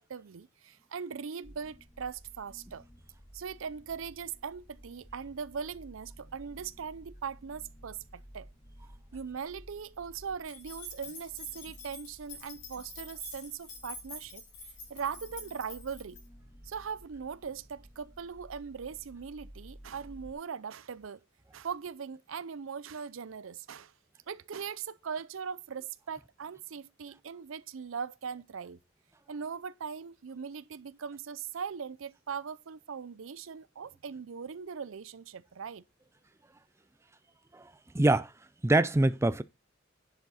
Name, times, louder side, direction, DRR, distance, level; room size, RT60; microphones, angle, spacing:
voice 1, 0.0-2.8 3.3-8.5 9.1-14.4 14.9-16.2 16.6-21.2 21.5-23.9 24.3-28.8 29.3-35.8, right 6 dB, 75° right, 0.5 m, -40 dB
sound 1, 1.4-20.3, equal, 20° left, 2.4 m, -54 dB
sound 2, 10.4-16.2, left 3 dB, 65° left, 5.7 m, -47 dB
voice 2, 37.9-38.3 38.6-39.4, right 2 dB, 15° right, 0.4 m, -24 dB
10.5 x 7.2 x 4.1 m
head